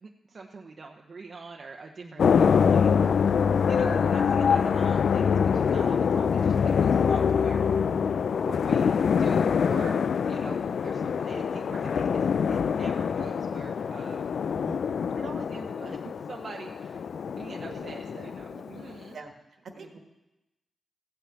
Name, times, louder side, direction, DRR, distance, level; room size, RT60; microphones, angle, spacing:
voice 1, 0.0-3.4 3.7-7.6 8.4-10.0 10.2-14.2 15.2-19.2 19.7-20.0, right 4 dB, 55° right, 2 dB, 0.9 m, -44 dB
sound 1, 2.2-19.0, left 6 dB, 75° left, 0.3 m, -25 dB
voice 2, 14.6-15.0 17.7-18.6 19.1-19.3 19.8-20.0, right 3 dB, 70° right, 4 dB, 1.6 m, -45 dB
15.0 x 5.9 x 8.5 m, 0.99 s
cardioid pair, 70°, 0 cm